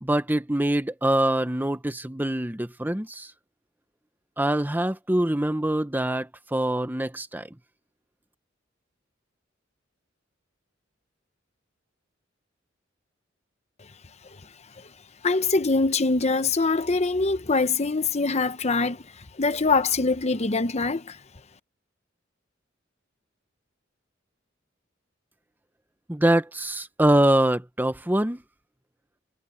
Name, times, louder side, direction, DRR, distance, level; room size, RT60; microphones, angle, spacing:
voice 1, 0.0-3.3 4.4-7.5 26.1-28.4, right 1 dB, 10° right, 0.8 m, -24 dB
voice 2, 15.2-21.2, left 3 dB, 35° left, 0.9 m, -24 dB
head